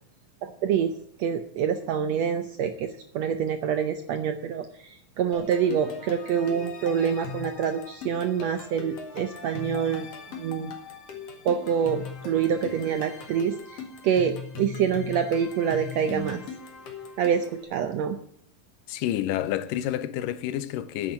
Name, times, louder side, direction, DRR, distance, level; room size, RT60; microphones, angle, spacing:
voice 1, 0.4-0.9 1.2-2.9 3.1-10.7 11.4-16.4 17.2-18.2, right 7 dB, 75° right, 1.5 m, -26 dB
sound 1, 5.3-17.6, left 5 dB, 50° left, 2.7 m, -40 dB
voice 2, 18.9-21.1, left 12 dB, 85° left, 2.4 m, -29 dB
10.0 x 8.9 x 8.7 m
omnidirectional pair, 3.9 m